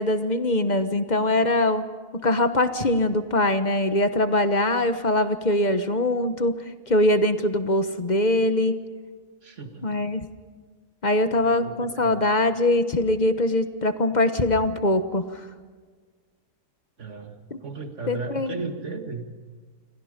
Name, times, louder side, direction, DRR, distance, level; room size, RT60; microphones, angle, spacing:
voice 1, 0.0-1.9 2.1-6.5 6.9-8.8 9.8-10.2 11.0-15.5 17.5-17.6 18.1-18.6, left 1 dB, 30° left, 9 dB, 1.1 m, -22 dB
voice 2, 9.4-9.9 11.4-12.3 17.0-19.3, right 4 dB, 50° right, 5 dB, 2.3 m, -36 dB
29.0 x 23.5 x 5.2 m, 1.5 s
omnidirectional pair, 1.6 m